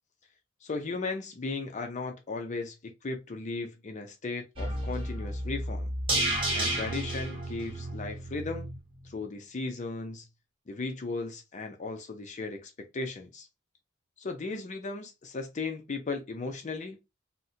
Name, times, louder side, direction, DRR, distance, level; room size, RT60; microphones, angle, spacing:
voice 1, 0.6-5.9 6.5-8.7 9.0-10.3 10.7-13.5 14.2-17.0, left 3 dB, 40° left, 0.5 m, -36 dB
sound 1, 4.6-8.8 9.1-9.2, right 1 dB, 30° right, 0.9 m, -32 dB
4.0 x 2.1 x 2.6 m
head